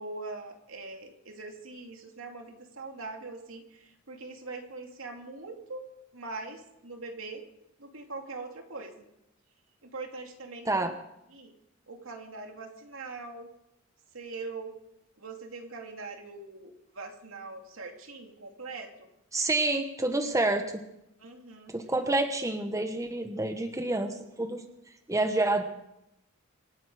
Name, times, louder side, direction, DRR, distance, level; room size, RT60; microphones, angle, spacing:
voice 1, 0.0-5.8 6.1-7.4 7.8-9.0 9.8-10.9 11.3-11.5 11.9-13.5 14.1-14.7 15.2-19.1 21.2-21.7, right 3 dB, 85° right, 3 dB, 2.5 m, -42 dB
voice 2, 19.3-20.8 21.7-24.6 25.1-25.6, right 2 dB, 15° right, 6 dB, 1.1 m, -28 dB
26.0 x 9.2 x 5.0 m, 0.83 s
head